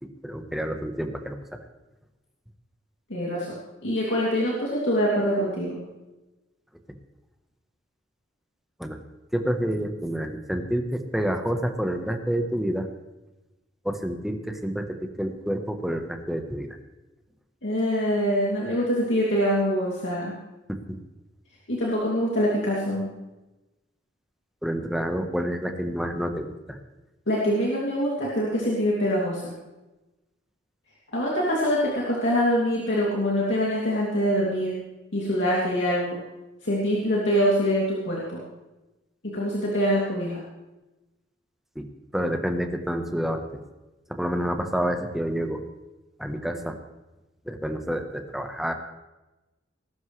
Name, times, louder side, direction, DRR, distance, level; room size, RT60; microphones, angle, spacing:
voice 1, 0.0-1.4 8.8-9.0 9.3-12.9 13.8-16.8 20.7-21.0 24.6-26.8 41.7-41.8 42.1-43.6 44.1-45.6 46.2-46.7 47.4-48.7, equal, ahead, 5 dB, 1.1 m, -28 dB
voice 2, 3.1-3.5 3.8-5.8 17.6-20.3 21.7-23.1 27.3-29.5 31.1-34.8 35.1-36.2 36.6-38.4 39.2-40.4, equal, 70° left, -5 dB, 2.8 m, -24 dB
20.0 x 12.0 x 3.3 m, 1.0 s
head